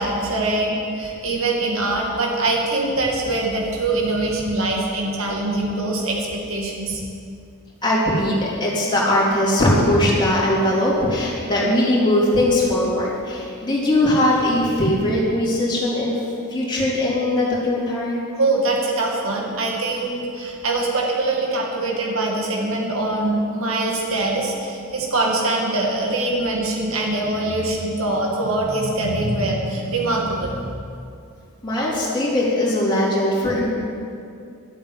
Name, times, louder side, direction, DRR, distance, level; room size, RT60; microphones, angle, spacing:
voice 1, 0.0-7.0 18.4-31.0, right 2 dB, 70° right, -1 dB, 2.3 m, -23 dB
voice 2, 7.8-16.2 16.5-18.2 31.6-33.7, left 1 dB, 20° left, -6 dB, 3.6 m, -20 dB
12.5 x 8.7 x 8.5 m, 2.4 s
head